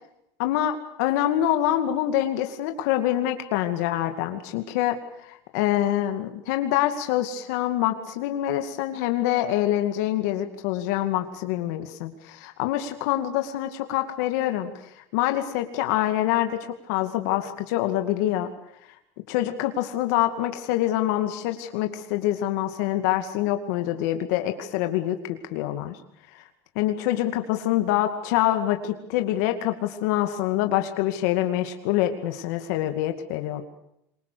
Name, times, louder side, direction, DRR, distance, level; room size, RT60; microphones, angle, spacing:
voice 1, 0.4-5.0 5.2-14.7 15.1-18.5 19.3-25.2 25.5-26.0 26.3-26.4 26.8-33.6, left 13 dB, 80° left, 6 dB, 2.3 m, -25 dB
26.5 x 23.0 x 6.9 m, 0.77 s
supercardioid pair, 125°, 9 cm